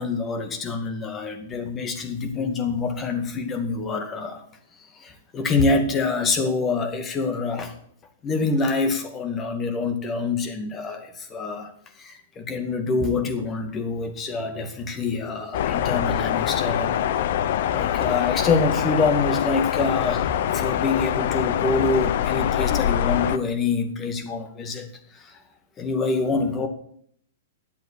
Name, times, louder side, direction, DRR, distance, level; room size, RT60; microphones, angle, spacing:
voice 1, 0.0-4.4 5.0-7.8 8.2-11.7 12.0-17.0 17.7-24.9 25.1-25.4 25.8-26.7, left 3 dB, 25° left, 6 dB, 2.1 m, -26 dB
sound 1, 15.5-23.4, left 10 dB, 55° left, 0.8 m, -24 dB
10.5 x 7.8 x 8.5 m, 0.65 s
hypercardioid pair, 110°, 0 cm